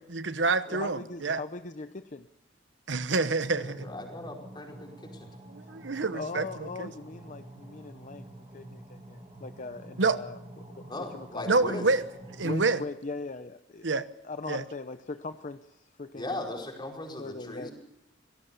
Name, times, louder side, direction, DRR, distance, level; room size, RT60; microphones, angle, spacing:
voice 1, 0.1-1.4 2.9-3.9 5.5-6.5 6.8-6.9 10.0-10.2 11.5-12.1 12.4-12.8 13.8-14.1 14.5-14.6, right 3 dB, 75° right, 1.0 m, -27 dB
voice 2, 0.7-2.3 6.1-8.3 8.5-10.4 10.8-11.5 12.4-13.9 14.2-16.4 17.2-17.7, left 3 dB, 40° left, 0.7 m, -40 dB
sound 1, 3.4-12.6, right 1 dB, 30° right, 6.0 m, -48 dB
voice 3, 3.5-5.3 10.9-11.9 16.1-17.7, left 1 dB, 25° left, 4.9 m, -38 dB
25.0 x 18.5 x 7.0 m
head